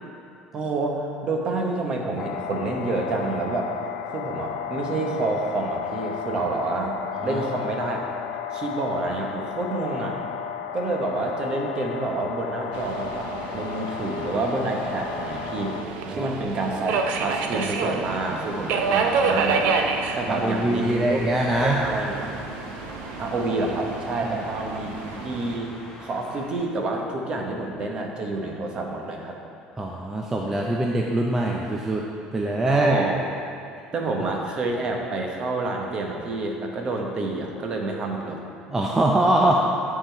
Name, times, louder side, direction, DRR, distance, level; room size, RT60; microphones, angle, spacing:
voice 1, 0.5-3.7 4.1-8.0 8.5-10.2 10.7-19.9 20.2-21.2 21.5-22.3 23.2-25.7 26.0-29.4 32.7-33.2 33.9-38.4, right 2 dB, 35° right, 1 dB, 1.0 m, -28 dB
sound 1, 2.2-15.8, left 8 dB, 65° left, 0.4 m, -33 dB
Subway metro underground, 12.7-25.6, right 5 dB, 70° right, 0.5 m, -29 dB
sound 2, 18.0-26.6, left 1 dB, 25° left, 1.4 m, -43 dB
voice 2, 20.3-21.8 24.2-24.4 29.8-32.0 32.3-33.0 38.7-39.5, right 1 dB, 15° right, -1 dB, 0.5 m, -23 dB
9.8 x 3.9 x 4.4 m, 2.5 s
cardioid pair, 140°, 3 cm